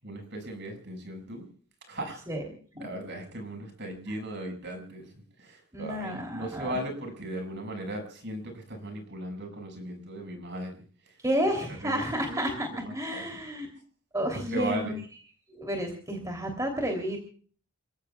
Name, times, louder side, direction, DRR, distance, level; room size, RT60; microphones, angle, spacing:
voice 1, 0.0-1.5 1.9-2.2 2.7-5.1 5.4-11.1 11.8-12.6 12.8-13.4 14.5-15.0, right 1 dB, 55° right, 4 dB, 6.3 m, -37 dB
voice 2, 5.7-6.8 11.2-13.7 14.1-14.9 15.5-17.2, equal, 15° right, 3 dB, 3.2 m, -31 dB
29.0 x 17.0 x 2.4 m, 0.43 s
head